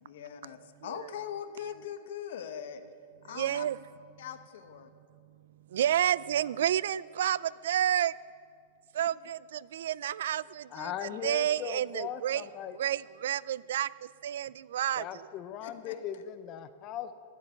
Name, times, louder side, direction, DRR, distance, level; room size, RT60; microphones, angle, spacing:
voice 1, 0.0-2.8 3.2-3.7 4.2-4.9 9.0-9.1 15.6-16.2, left 9 dB, 65° left, 9 dB, 1.1 m, -41 dB
voice 2, 3.3-3.8 5.7-8.1 8.9-12.4 12.7-15.3, right 11 dB, 75° right, 21 dB, 0.3 m, -30 dB
voice 3, 10.7-12.8 15.0-17.2, left 9 dB, 30° left, 11 dB, 0.5 m, -39 dB
12.5 x 8.4 x 9.5 m, 2.2 s
supercardioid pair, 160°, 0 cm